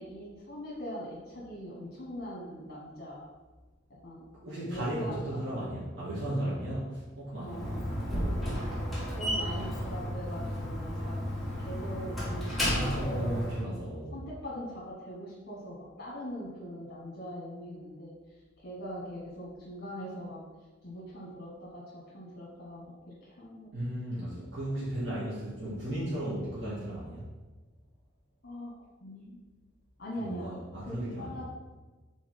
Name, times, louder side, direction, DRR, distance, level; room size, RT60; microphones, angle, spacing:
voice 1, 0.0-3.3 4.0-4.2 4.6-5.3 7.4-7.8 9.1-11.2 11.6-13.4 13.9-18.1 18.6-20.4 20.8-23.7 28.4-28.7 29.0-29.3 30.0-30.5 30.9-31.4, equal, 50° left, -5 dB, 1.3 m, -41 dB
voice 2, 4.3-8.5 12.6-14.1 23.7-27.2 30.2-31.4, right 1 dB, 65° right, -9 dB, 2.0 m, -35 dB
Slam, 7.4-13.6, equal, ahead, 1.5 m, -33 dB
6.3 x 3.9 x 5.3 m, 1.3 s
head